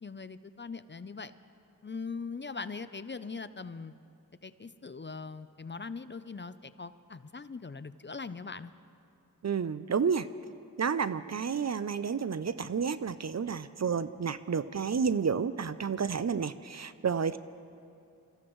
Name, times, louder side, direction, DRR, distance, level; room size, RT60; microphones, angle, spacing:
voice 1, 0.0-1.3 1.8-3.9 4.4-8.7, left 4 dB, 30° left, 13 dB, 0.5 m, -41 dB
voice 2, 9.4-10.3 10.8-17.4, right 6 dB, 50° right, 14 dB, 0.5 m, -30 dB
26.5 x 14.5 x 3.1 m, 2.5 s
wide cardioid pair, 45°, 36 cm